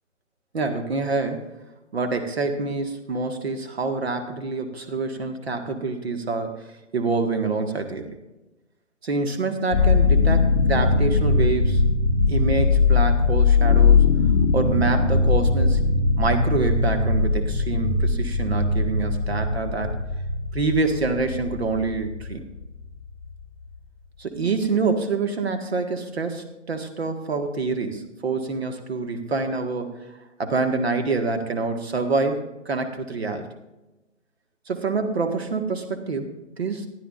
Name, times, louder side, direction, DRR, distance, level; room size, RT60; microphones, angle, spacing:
voice 1, 0.5-1.4 1.9-8.1 9.0-11.8 12.3-14.0 14.5-15.8 16.2-20.0 20.5-22.4 24.2-30.0 30.4-33.4 34.7-36.9, right 3 dB, 55° right, 6 dB, 1.7 m, -26 dB
sound 1, 9.7-23.7, left 4 dB, 25° left, 0.8 m, -20 dB
15.0 x 12.0 x 2.5 m, 1.0 s
figure-of-eight pair, 140°, 39 cm